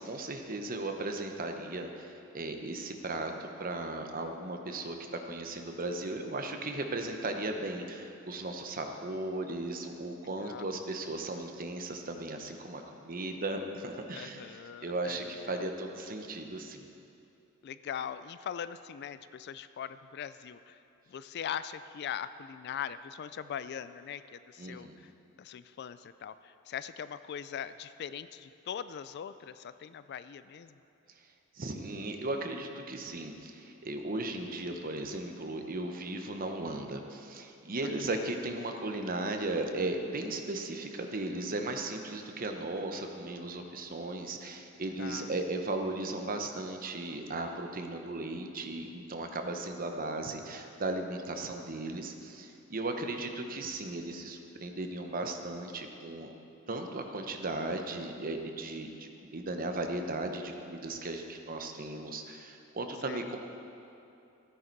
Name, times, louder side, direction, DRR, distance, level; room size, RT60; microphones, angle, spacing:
voice 1, 0.0-16.9 24.6-25.0 31.5-56.3 56.7-63.4, right 2 dB, 45° right, 4 dB, 0.9 m, -36 dB
voice 2, 10.4-10.7 14.1-15.6 17.6-20.8 21.1-25.1 25.4-30.8 34.1-34.6 37.8-38.3 45.0-45.4 53.4-53.6 63.0-63.2, left 8 dB, 50° left, 14 dB, 0.3 m, -41 dB
14.0 x 9.6 x 4.6 m, 2.7 s
head